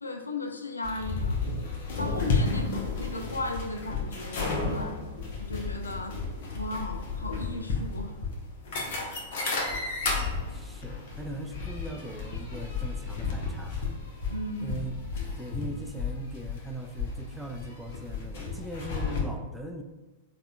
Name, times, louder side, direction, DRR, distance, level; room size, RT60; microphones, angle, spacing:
voice 1, 0.0-1.4 2.0-5.0 5.4-6.2 6.5-8.2 14.3-14.8, left 2 dB, 85° left, 5 dB, 0.3 m, -36 dB
sound 1, 0.8-19.2, left 4 dB, 55° left, 0.7 m, -33 dB
voice 2, 8.8-9.2 9.5-13.9 14.6-15.0 15.4-19.8, right 1 dB, 5° right, 3 dB, 0.3 m, -40 dB
4.0 x 2.2 x 2.5 m, 1.2 s
figure-of-eight pair, 100°, 0 cm